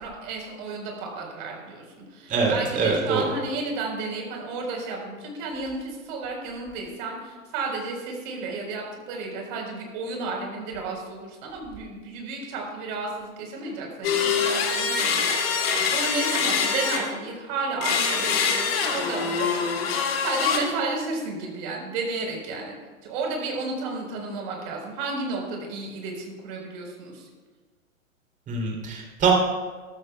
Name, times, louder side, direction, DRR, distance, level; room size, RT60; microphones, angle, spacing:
voice 1, 0.0-22.8 23.0-27.3, right 3 dB, 40° right, 0 dB, 4.5 m, -32 dB
voice 2, 2.3-3.2 28.5-29.3, right 5 dB, 20° right, 0 dB, 3.1 m, -24 dB
sound 1, 14.0-17.3 17.8-20.6, left 6 dB, 45° left, 2.0 m, -24 dB
21.5 x 13.0 x 2.3 m, 1.4 s
figure-of-eight pair, 110°, 41 cm